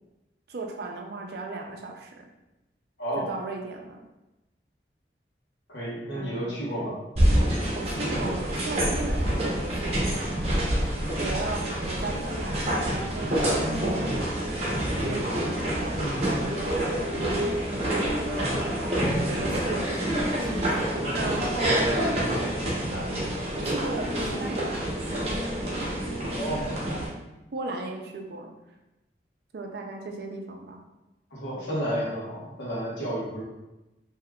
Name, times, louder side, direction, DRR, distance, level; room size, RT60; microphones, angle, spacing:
voice 1, 0.5-2.3 3.2-4.0 6.1-6.9 7.7-10.7 11.2-17.2 17.6-24.9 26.0-26.8 27.5-28.5 29.5-30.8, right 2 dB, 60° right, 2 dB, 0.4 m, -37 dB
voice 2, 3.0-3.3 5.7-7.0 16.0-16.3 26.3-26.7 31.3-33.4, right 1 dB, 85° left, -6 dB, 1.1 m, -31 dB
sound 1, 7.2-27.1, right 1 dB, 35° right, 0.8 m, -27 dB
Drum, 19.0-21.5, equal, 30° left, 0.4 m, -35 dB
3.5 x 2.8 x 2.2 m, 0.99 s
head